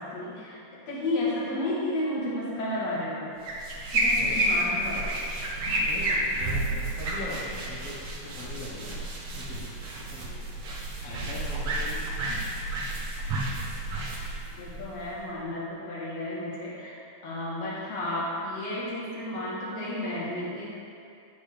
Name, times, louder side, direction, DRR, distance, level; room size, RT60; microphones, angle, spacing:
voice 1, 0.0-3.3 3.9-5.1 5.7-5.8 6.6-6.7 12.3-12.5 14.0-16.9 17.2-20.7, left 1 dB, 55° left, -6 dB, 2.1 m, -33 dB
sound 1, 3.4-15.3, right 1 dB, 70° right, 1.3 m, -30 dB
voice 2, 5.8-7.9 8.2-9.0 9.4-9.7 10.1-10.5 11.0-12.0, left 2 dB, 75° left, -6 dB, 1.3 m, -41 dB
9.2 x 6.9 x 3.4 m, 2.4 s
omnidirectional pair, 4.5 m